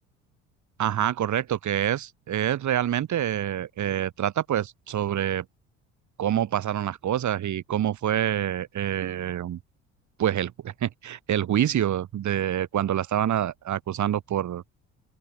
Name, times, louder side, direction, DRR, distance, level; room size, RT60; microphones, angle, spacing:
voice 1, 0.8-5.5 6.2-9.6 10.2-14.6, right 11 dB, 55° right, 4.3 m, -26 dB
open air
hypercardioid pair, 70°, 35 cm